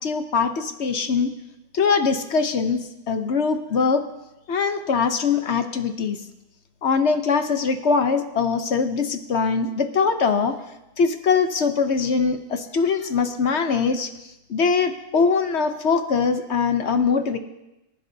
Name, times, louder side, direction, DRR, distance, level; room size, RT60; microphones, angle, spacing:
voice 1, 0.0-1.4 1.7-4.0 4.5-6.2 6.8-10.6 11.0-17.4, left 5 dB, 55° left, 8 dB, 1.0 m, -22 dB
25.5 x 10.5 x 2.7 m, 0.93 s
omnidirectional pair, 1.6 m